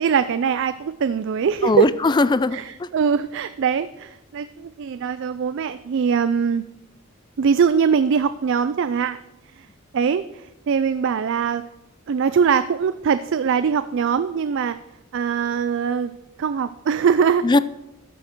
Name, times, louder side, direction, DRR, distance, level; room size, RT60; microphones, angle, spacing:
voice 1, 0.0-1.9 2.5-2.6 2.9-6.6 7.4-9.2 9.6-9.7 9.9-11.6 12.1-14.8 15.1-16.1 16.4-17.4, right 6 dB, 60° right, 12 dB, 0.4 m, -22 dB
voice 2, 1.6-2.9 17.4-17.6, left 3 dB, 20° left, 16 dB, 0.3 m, -19 dB
13.0 x 7.2 x 4.5 m, 0.93 s
head